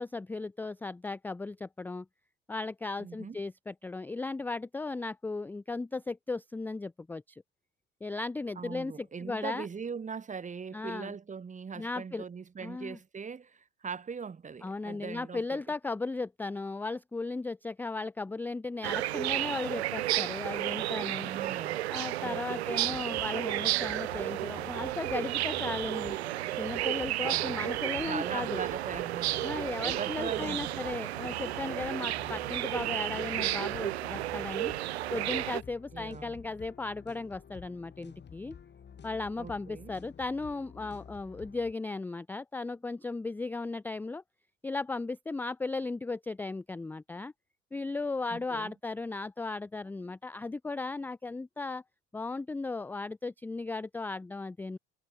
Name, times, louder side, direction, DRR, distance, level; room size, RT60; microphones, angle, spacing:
voice 1, 0.0-2.1 2.5-7.4 8.0-9.7 10.7-11.1 11.8-12.2 12.6-13.0 14.6-21.3 21.9-26.2 26.6-28.6 29.4-34.7 35.1-38.6 39.0-44.2 44.6-47.3 47.7-51.8 52.1-54.8, left 3 dB, 5° left, 0.3 m, -36 dB
voice 2, 3.0-3.4 8.6-15.4 21.2-22.0 22.2-23.1 27.2-27.7 28.1-30.8 35.9-36.4 39.4-39.9 48.3-48.7, right 6 dB, 25° right, 1.0 m, -41 dB
sound 1, 18.8-35.6, right 15 dB, 80° right, 0.5 m, -32 dB
sound 2, 22.8-41.7, left 7 dB, 35° left, 1.7 m, -51 dB
figure-of-eight pair, 50°, 32 cm